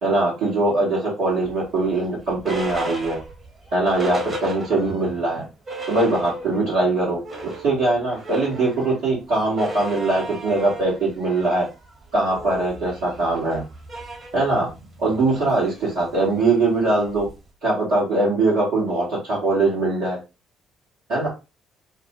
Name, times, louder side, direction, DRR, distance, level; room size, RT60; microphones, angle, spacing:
voice 1, 0.0-3.2 3.7-5.4 5.9-11.6 12.1-13.6 14.3-14.7 15.0-17.2 17.6-20.2 21.1-21.3, right 2 dB, 65° right, -8 dB, 1.0 m, -21 dB
sound 1, 1.4-5.1 5.4-5.5 5.7-6.7 7.1-17.5, right 1 dB, 35° right, 1.1 m, -36 dB
2.3 x 2.0 x 2.9 m, 0.28 s
figure-of-eight pair, 45°, 0 cm